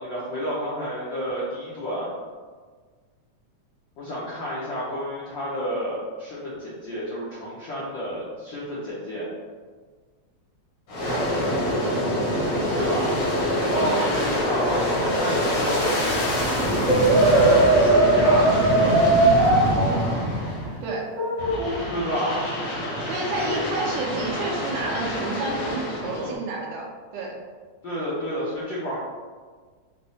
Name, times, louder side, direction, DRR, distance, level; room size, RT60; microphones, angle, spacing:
voice 1, 0.0-2.1 4.0-9.3 12.7-13.1 13.7-14.8 15.1-20.0 21.9-22.5 23.4-23.6 25.5-25.8 26.0-26.4 27.8-29.0, equal, 85° left, -8 dB, 1.0 m, -30 dB
Aircraft, 10.9-20.9 21.4-26.3, equal, 60° left, 1.1 m, -25 dB
Brass instrument, 16.9-19.6 21.2-21.7, right 2 dB, 60° right, 2.1 m, -18 dB
voice 2, 23.1-27.3, right 2 dB, 75° right, -2 dB, 1.6 m, -30 dB
5.2 x 2.1 x 4.0 m, 1.5 s
omnidirectional pair, 3.3 m